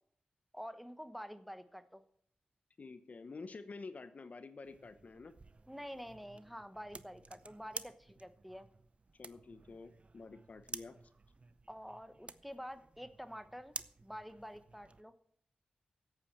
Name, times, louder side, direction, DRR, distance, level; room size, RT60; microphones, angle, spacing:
voice 1, 0.5-2.0 5.7-8.7 11.7-15.1, equal, ahead, 11 dB, 1.0 m, -48 dB
voice 2, 2.8-5.3 9.2-11.0, left 4 dB, 55° left, 11 dB, 0.9 m, -49 dB
sound 1, 4.6-15.0, right 3 dB, 40° right, 0.6 m, -52 dB
8.5 x 8.4 x 8.3 m, 0.65 s
cardioid pair, 65°, 3 cm